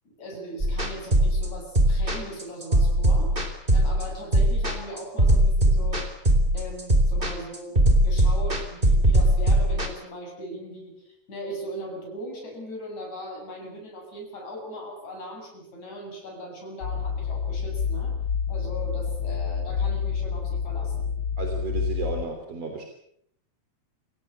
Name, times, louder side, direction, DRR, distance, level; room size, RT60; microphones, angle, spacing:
voice 1, 0.1-3.3 3.7-6.1 6.5-18.2 18.5-21.1, equal, 65° left, 1 dB, 9.0 m, -39 dB
sound 1, 0.6-9.9, right 1 dB, 15° right, 3.5 m, -20 dB
sound 2, 16.8-22.2, left 6 dB, 45° left, 1.8 m, -28 dB
voice 2, 21.4-22.8, right 4 dB, 55° right, 3 dB, 4.4 m, -33 dB
29.0 x 16.5 x 8.6 m, 0.70 s
omnidirectional pair, 3.5 m